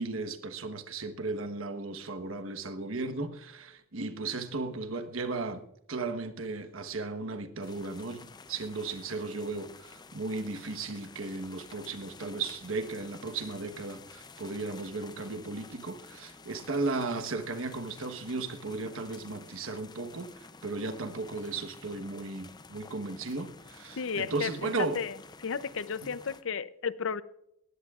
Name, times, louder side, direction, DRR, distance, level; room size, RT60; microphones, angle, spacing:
voice 1, 0.0-25.0, right 3 dB, 80° right, 8 dB, 1.2 m, -35 dB
sound 1, 7.6-26.4, left 4 dB, 20° left, 0.5 m, -51 dB
voice 2, 24.0-27.2, left 6 dB, 70° left, 16 dB, 0.6 m, -34 dB
19.5 x 16.0 x 2.4 m, 0.81 s
head